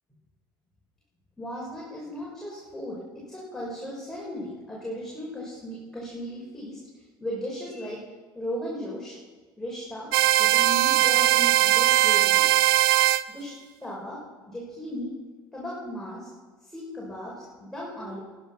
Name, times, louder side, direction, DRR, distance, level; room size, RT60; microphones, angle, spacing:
voice 1, 1.4-9.2 9.6-10.1 10.4-12.5 13.3-13.5 13.8-15.2 15.5-16.3 16.6-18.2, equal, 5° left, -6 dB, 5.9 m, -36 dB
sound 1, 10.1-13.2, right 17 dB, 65° right, 0.5 m, -20 dB
22.0 x 11.0 x 6.1 m, 1.4 s
figure-of-eight pair, 65°, 13 cm